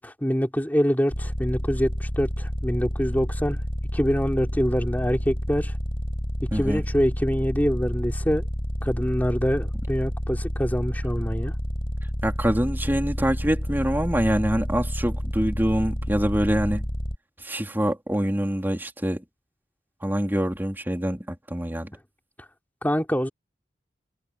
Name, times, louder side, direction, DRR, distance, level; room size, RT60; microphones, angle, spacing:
voice 1, 0.0-3.6 3.9-5.7 6.5-8.4 8.8-11.5 22.8-23.3, equal, 10° left, 3.1 m, -25 dB
sound 1, 1.1-17.2, equal, 35° left, 3.8 m, -29 dB
voice 2, 6.5-6.8 12.2-16.8 17.4-19.2 20.0-21.9, equal, 10° right, 3.3 m, -25 dB
head